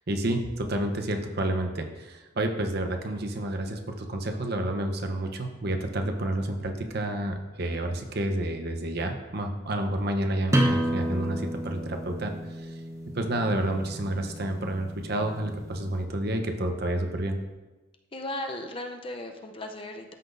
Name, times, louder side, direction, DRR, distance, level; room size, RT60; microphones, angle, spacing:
voice 1, 0.1-12.3 12.6-12.7 13.1-17.4, right 1 dB, 50° right, 4 dB, 0.8 m, -29 dB
sound 1, 10.5-15.9, right 1 dB, 15° right, 0.8 m, -31 dB
voice 2, 18.1-20.1, left 1 dB, 25° left, 4 dB, 0.5 m, -36 dB
13.0 x 5.9 x 2.6 m, 1.1 s
head